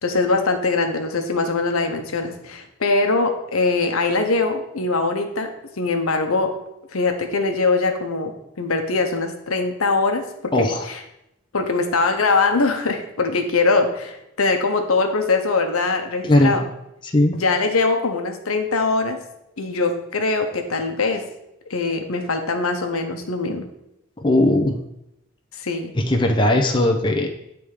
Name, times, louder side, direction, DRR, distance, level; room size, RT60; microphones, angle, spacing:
voice 1, 0.0-5.5 5.8-6.5 6.9-8.3 8.6-11.0 11.5-16.6 17.3-19.2 19.6-21.2 21.7-23.7 25.5-25.9, left 3 dB, 85° left, 5 dB, 0.9 m, -22 dB
voice 2, 10.5-10.9 16.2-16.6 17.0-17.4 24.2-24.8 26.0-27.3, left 1 dB, 20° left, 2 dB, 0.6 m, -18 dB
8.7 x 3.4 x 4.8 m, 0.83 s
head